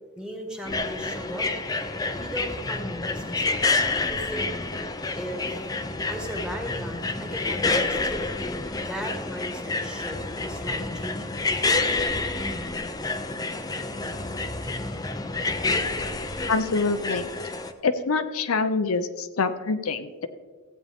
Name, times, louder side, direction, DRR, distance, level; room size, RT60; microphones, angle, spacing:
voice 1, 0.2-1.5 2.2-3.7 4.1-4.5 5.1-5.4 6.1-8.3 8.8-11.4, equal, 5° right, 2 dB, 1.5 m, -37 dB
sound 1, 0.7-17.7, left 3 dB, 20° left, 0.5 m, -28 dB
voice 2, 16.5-17.3 17.8-20.3, left 4 dB, 85° left, 9 dB, 0.7 m, -25 dB
15.5 x 8.5 x 3.5 m, 1.4 s
head